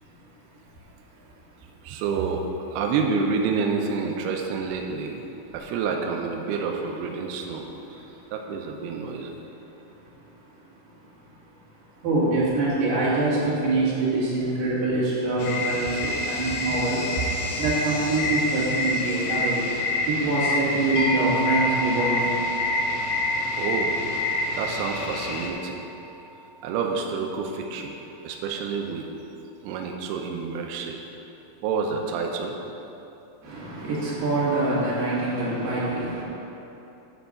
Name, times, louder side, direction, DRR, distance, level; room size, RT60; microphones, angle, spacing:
voice 1, 1.8-5.2 5.5-7.7 8.3-9.3 23.6-24.0 24.5-25.8 26.6-27.9 28.2-29.1 29.6-31.0 31.6-32.6, right 5 dB, 90° right, 2 dB, 2.3 m, -28 dB
voice 2, 12.0-17.1 17.6-19.6 20.1-22.4 33.4-36.2, right 2 dB, 65° right, -8 dB, 4.1 m, -25 dB
sound 1, 15.4-25.5, left 2 dB, 75° left, 3.0 m, -27 dB
sound 2, 20.9-26.9, right 2 dB, 35° right, 1.0 m, -34 dB
10.5 x 4.6 x 6.9 m, 3.0 s
omnidirectional pair, 5.3 m